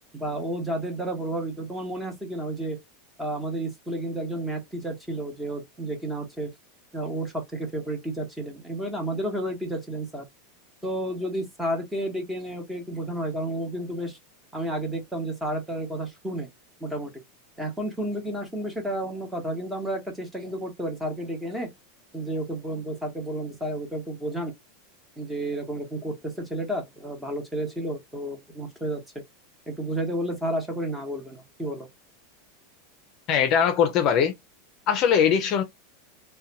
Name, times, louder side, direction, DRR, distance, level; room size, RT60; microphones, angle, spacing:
voice 1, 0.1-2.8 3.2-6.5 6.9-10.2 10.8-14.2 14.5-16.5 16.8-17.1 17.6-21.7 22.1-24.5 25.2-29.0 29.7-31.9, right 1 dB, 5° right, 0.9 m, -31 dB
voice 2, 33.3-34.3 34.9-35.6, left 8 dB, 45° left, 0.5 m, -21 dB
2.6 x 2.2 x 2.7 m
supercardioid pair, 135°, 0 cm